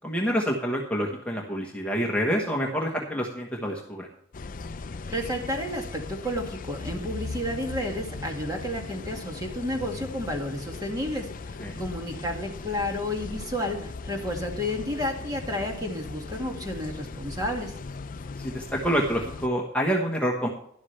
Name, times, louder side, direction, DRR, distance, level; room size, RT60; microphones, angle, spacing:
voice 1, 0.0-4.1 11.6-11.8 18.4-20.5, equal, 5° left, -1 dB, 1.3 m, -27 dB
sound 1, 4.3-19.5, left 3 dB, 40° left, 0.5 m, -38 dB
voice 2, 5.1-17.7, left 1 dB, 20° right, 2 dB, 2.1 m, -31 dB
12.5 x 11.5 x 3.3 m, 0.69 s
head